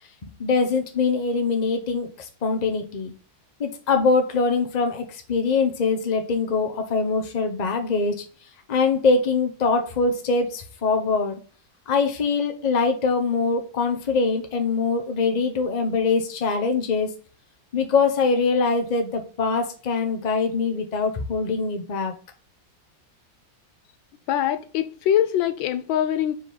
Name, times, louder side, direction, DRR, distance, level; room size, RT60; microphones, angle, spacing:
voice 1, 0.2-3.1 3.6-8.2 8.7-11.4 11.9-17.1 17.7-22.1, left 4 dB, 30° left, 0.8 m, -23 dB
voice 2, 24.3-26.3, left 10 dB, 90° left, 1.4 m, -23 dB
4.8 x 4.0 x 5.0 m
omnidirectional pair, 2.0 m